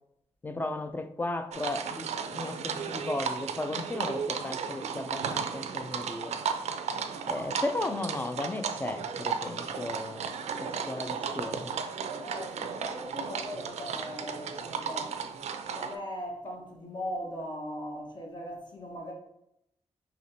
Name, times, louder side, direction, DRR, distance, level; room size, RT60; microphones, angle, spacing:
voice 1, 0.4-6.3 7.3-10.3 10.5-11.8, left 2 dB, 15° left, 0.4 m, -35 dB
sound 1, 1.5-16.0, right 6 dB, 75° right, 0.4 m, -34 dB
voice 2, 12.2-15.2 15.7-19.1, equal, 45° left, 1.1 m, -39 dB
5.6 x 2.9 x 2.6 m
wide cardioid pair, 120°, 11 cm